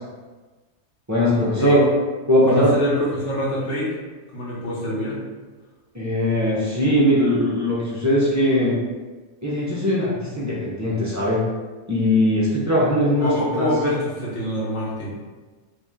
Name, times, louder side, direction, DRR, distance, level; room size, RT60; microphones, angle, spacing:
voice 1, 1.1-1.8 2.3-2.7 5.9-8.7 9.4-11.4 11.9-13.7, left 1 dB, 15° right, -8 dB, 0.6 m, -20 dB
voice 2, 2.5-3.9 4.3-5.2 13.1-15.1, equal, 55° left, -6 dB, 1.4 m, -25 dB
2.9 x 2.9 x 3.6 m, 1.3 s
omnidirectional pair, 1.5 m